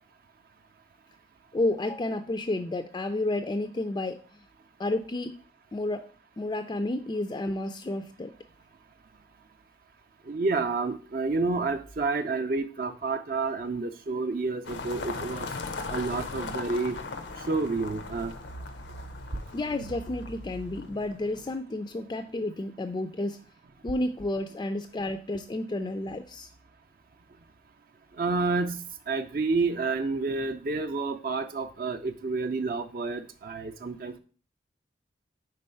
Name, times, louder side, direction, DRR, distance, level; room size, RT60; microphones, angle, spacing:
voice 1, 1.5-4.2 4.8-5.3 5.7-6.1 6.4-8.3 19.5-23.4 23.8-26.5, left 2 dB, 25° left, 7 dB, 0.3 m, -31 dB
voice 2, 10.3-15.5 15.9-17.0 17.5-18.3 28.2-28.8 29.1-34.2, right 3 dB, 55° right, 6 dB, 0.5 m, -29 dB
sound 1, 14.6-21.5, left 3 dB, 90° left, 0.6 m, -38 dB
5.4 x 3.8 x 5.4 m, 0.40 s
head